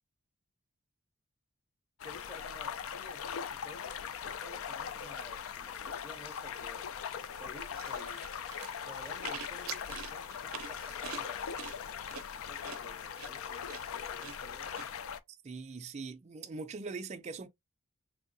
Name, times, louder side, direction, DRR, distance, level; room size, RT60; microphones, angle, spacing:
sound 1, 2.0-15.2, left 7 dB, 75° left, 0.4 m, -40 dB
voice 1, 2.0-3.2 3.6-6.9 7.4-8.3 8.8-11.4 12.5-14.7, left 1 dB, 10° left, 0.6 m, -53 dB
sound 2, 7.7-14.9, right 9 dB, 90° right, 0.5 m, -46 dB
voice 2, 15.4-17.5, right 4 dB, 35° right, 0.4 m, -41 dB
3.5 x 2.7 x 2.5 m
head